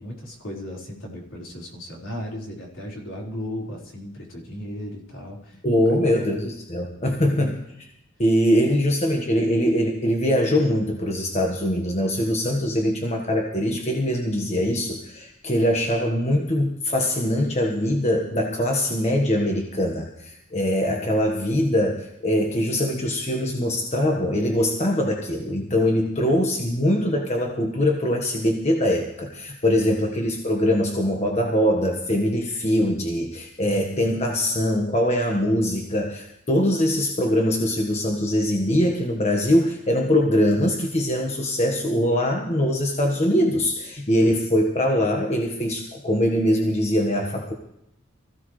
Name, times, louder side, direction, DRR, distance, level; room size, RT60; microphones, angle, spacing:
voice 1, 0.0-5.6 6.0-6.3 7.2-7.6 26.0-26.3 29.7-29.9 33.7-34.0, left 1 dB, 65° left, -2 dB, 4.5 m, -36 dB
voice 2, 5.6-7.9 8.2-47.5, equal, 35° left, 2 dB, 1.4 m, -22 dB
24.0 x 15.5 x 3.3 m, 0.80 s
head